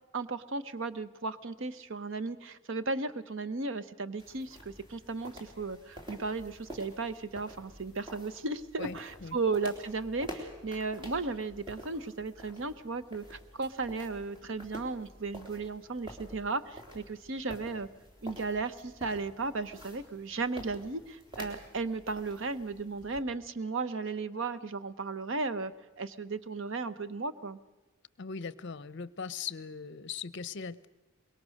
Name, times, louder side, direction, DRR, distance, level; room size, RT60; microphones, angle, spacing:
voice 1, 0.1-17.9 18.2-27.6, right 3 dB, 60° right, 15 dB, 0.9 m, -35 dB
sound 1, 4.2-23.2, equal, 20° right, 3.3 m, -49 dB
voice 2, 8.8-9.4 28.2-30.9, left 5 dB, 55° left, 18 dB, 0.7 m, -40 dB
24.5 x 22.0 x 6.4 m, 1.1 s
head